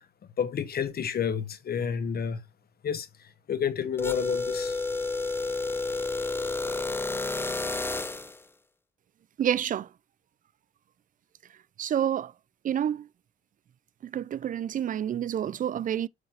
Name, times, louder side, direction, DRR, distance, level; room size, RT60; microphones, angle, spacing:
voice 1, 0.4-2.4 2.8-3.1 3.5-4.8, left 7 dB, 50° left, 1.1 m, -29 dB
sound 1, 4.0-8.4, left 3 dB, 10° left, 0.7 m, -30 dB
voice 2, 9.4-9.9 11.8-12.3 12.6-13.1 14.0-16.1, right 10 dB, 40° right, 0.4 m, -28 dB
8.1 x 3.9 x 4.3 m
cardioid pair, 90°, 20 cm